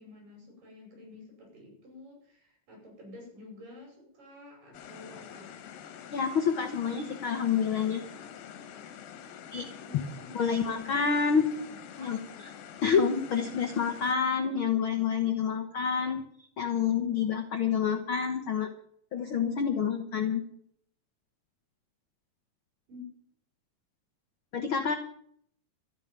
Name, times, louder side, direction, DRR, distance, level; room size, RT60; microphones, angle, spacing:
voice 1, 0.0-5.5 9.9-10.8 12.0-12.1 22.9-23.1, left 2 dB, 70° right, 0 dB, 7.4 m, -49 dB
sound 1, 4.7-14.1, left 8 dB, 90° left, 3.0 m, -46 dB
voice 2, 6.1-8.0 9.5-9.7 10.3-11.5 12.0-12.2 12.8-16.2 16.6-18.7 19.1-20.4 24.5-24.9, left 6 dB, 70° left, 6 dB, 1.2 m, -28 dB
13.5 x 8.6 x 8.9 m, 0.64 s
omnidirectional pair, 4.0 m